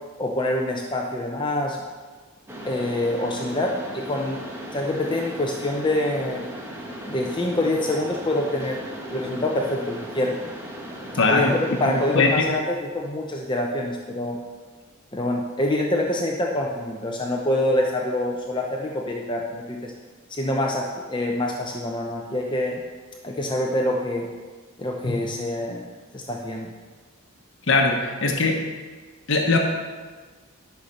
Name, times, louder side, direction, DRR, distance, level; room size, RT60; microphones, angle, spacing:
voice 1, 0.2-1.8 2.6-4.4 4.7-6.5 7.1-8.8 9.1-10.4 11.3-14.4 15.1-19.9 20.3-22.7 23.2-24.3 24.8-25.8 26.1-26.7, left 1 dB, 20° left, 0 dB, 0.7 m, -26 dB
Mechanisms, 2.5-12.4, equal, 10° right, 1.3 m, -37 dB
voice 2, 11.2-11.6 12.1-12.5 25.0-25.2 27.7-28.6 29.3-29.6, left 3 dB, 60° left, 1 dB, 1.1 m, -20 dB
11.5 x 5.8 x 6.6 m, 1.4 s
head